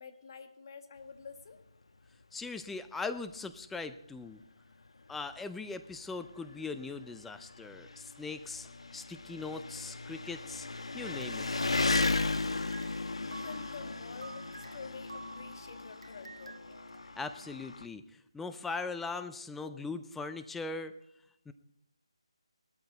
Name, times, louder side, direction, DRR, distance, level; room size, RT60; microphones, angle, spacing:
voice 1, 0.0-1.6 12.3-12.5 13.0-16.8, left 5 dB, 45° left, 8 dB, 1.6 m, -49 dB
voice 2, 2.3-4.4 5.1-10.7 10.9-11.5 17.2-20.9 21.5-21.6, left 4 dB, 5° left, 10 dB, 0.4 m, -40 dB
Engine, 3.3-3.4 3.8-3.9 4.8-4.9 5.1-17.8, left 3 dB, 75° left, 1.1 m, -36 dB
sound 1, 11.0-12.5 12.7-17.0, right 2 dB, 80° right, 0.8 m, -51 dB
18.5 x 12.5 x 4.0 m, 0.80 s
figure-of-eight pair, 160°, 3 cm